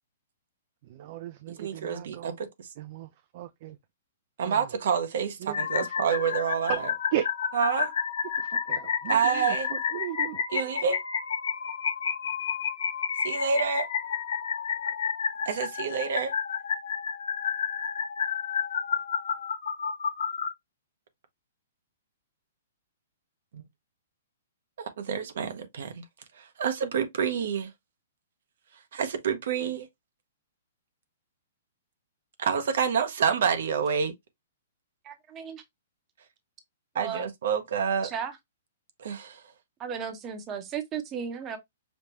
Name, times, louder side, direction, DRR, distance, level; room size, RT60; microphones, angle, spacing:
voice 1, 0.8-2.4 2.8-3.8 4.4-4.7 5.4-5.9 6.7-6.8 7.1-7.3 8.4-10.4, right 12 dB, 45° right, 0.4 m, -36 dB
voice 2, 1.6-2.7 4.4-6.9 7.5-7.9 9.1-9.7 10.5-11.0 13.2-13.9 15.5-16.3 23.5-23.6 24.8-26.0 26.6-27.7 28.9-29.9 32.4-34.1 36.9-38.1 39.0-39.4, right 7 dB, 70° right, 0.8 m, -28 dB
sound 1, 5.5-20.5, left 7 dB, 75° left, 0.7 m, -30 dB
voice 3, 35.0-35.6 36.9-37.3 38.0-38.4 39.8-41.6, right 7 dB, 25° right, 0.8 m, -35 dB
5.2 x 2.1 x 3.0 m
hypercardioid pair, 145°, 0 cm